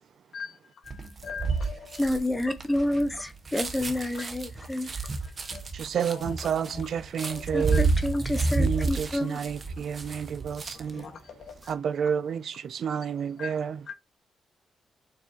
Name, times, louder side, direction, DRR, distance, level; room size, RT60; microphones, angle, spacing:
voice 1, 0.3-2.4 4.0-4.2 4.6-4.7 5.2-5.6 6.1-6.9 7.2-9.9 10.9-11.7 12.0-12.2 13.4-13.5 13.9-14.0, left 6 dB, 60° left, 1.8 m, -44 dB
sound 1, 0.9-11.0 11.4-11.7, right 3 dB, 30° right, 1.0 m, -30 dB
voice 2, 2.0-4.9 7.5-9.4, left 1 dB, 10° left, 0.7 m, -29 dB
voice 3, 5.7-7.9 8.6-11.0 11.7-13.8, right 7 dB, 55° right, 0.5 m, -30 dB
7.0 x 5.9 x 3.0 m
wide cardioid pair, 175°, 0 cm